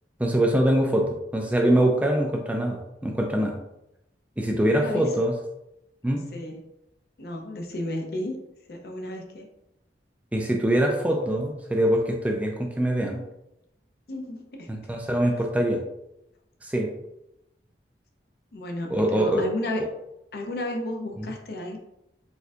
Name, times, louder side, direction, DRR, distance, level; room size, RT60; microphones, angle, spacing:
voice 1, 0.2-3.6 4.4-5.3 6.0-6.2 10.3-13.2 14.7-15.8 16.6-16.9 18.9-19.4 21.2-21.3, right 1 dB, 10° right, 1 dB, 0.3 m, -23 dB
voice 2, 4.5-5.1 6.3-6.6 7.2-8.4 8.7-9.5 14.1-14.7 18.5-19.8 20.3-21.8, left 1 dB, 60° left, 2 dB, 0.6 m, -33 dB
4.2 x 2.6 x 2.3 m, 0.86 s
head